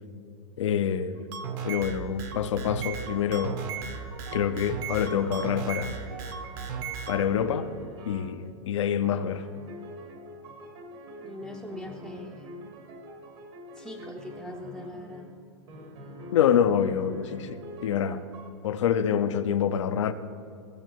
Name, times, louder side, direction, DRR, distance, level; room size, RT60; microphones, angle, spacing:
voice 1, 0.6-1.3 1.6-3.6 4.3-6.0 7.1-7.7 8.1-9.5 16.3-18.3 18.6-20.1, left 8 dB, 80° left, 0.6 m, -26 dB
sound 1, 1.2-7.2, right 7 dB, 50° right, 0.9 m, -36 dB
sound 2, 2.9-8.5 9.0-15.3 15.7-18.5, right 1 dB, 65° right, 1.7 m, -45 dB
voice 2, 11.2-12.5 13.7-15.3, left 2 dB, ahead, 0.5 m, -41 dB
16.0 x 6.9 x 3.1 m
hypercardioid pair, 125°, 15 cm